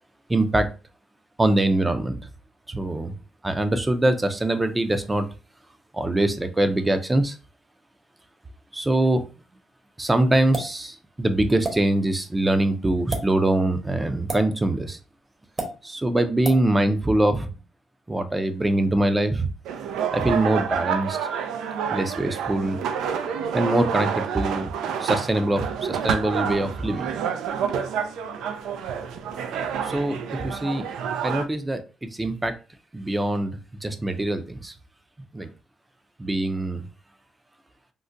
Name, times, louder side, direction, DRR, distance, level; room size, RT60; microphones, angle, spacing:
voice 1, 0.3-0.7 1.4-2.2 2.7-3.1 3.4-5.3 5.9-7.4 8.7-9.2 10.0-15.0 15.8-17.5 18.1-19.5 20.1-21.2 21.9-22.8 23.5-24.7 25.0-27.1 29.8-30.8 31.2-31.8 32.1-32.5 32.9-33.5 33.8-34.7 35.3-35.5 36.2-36.8, right 1 dB, 15° right, 9 dB, 0.5 m, -23 dB
sound 1, 10.5-10.8 11.6-11.8 13.0-13.2 14.3-14.5 15.6-15.7 16.4-16.6, right 2 dB, 30° right, 1.0 m, -29 dB
sound 2, 19.7-31.5, right 7 dB, 85° right, 0.4 m, -28 dB
3.7 x 2.1 x 2.5 m, 0.33 s
cardioid pair, 90°, 0 cm